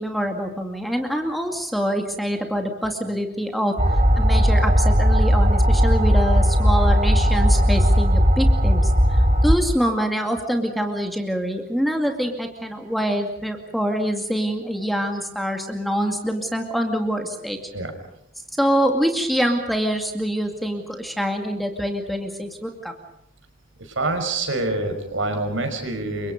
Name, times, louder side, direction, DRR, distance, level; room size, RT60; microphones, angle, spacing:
voice 1, 0.0-3.7 4.2-17.6 18.6-22.9, equal, ahead, 4 dB, 2.3 m, -25 dB
sound 1, 3.8-9.6, equal, 35° right, 3.4 m, -17 dB
voice 2, 24.0-26.3, right 2 dB, 70° right, 6 dB, 5.5 m, -26 dB
29.5 x 25.0 x 5.3 m, 0.77 s
head